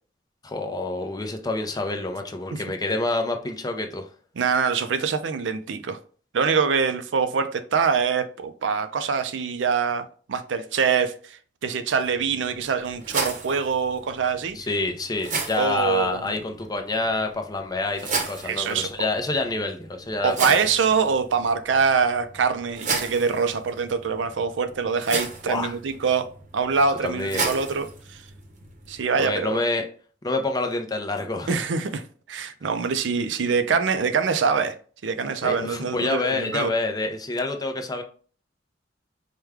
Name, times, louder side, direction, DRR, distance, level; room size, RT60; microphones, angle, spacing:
voice 1, 0.4-4.1 14.5-20.7 25.4-25.7 27.0-27.7 29.2-29.9 30.2-31.7 35.4-38.0, left 2 dB, 20° left, 0.5 m, -27 dB
voice 2, 4.4-6.0 6.3-14.6 15.6-16.4 18.4-18.9 20.2-28.2 28.9-29.6 31.5-31.9 32.3-34.7 35.0-36.7, right 5 dB, 80° right, 0.4 m, -24 dB
sound 1, 12.0-29.0, right 4 dB, 45° right, 0.8 m, -35 dB
4.7 x 2.2 x 3.4 m
head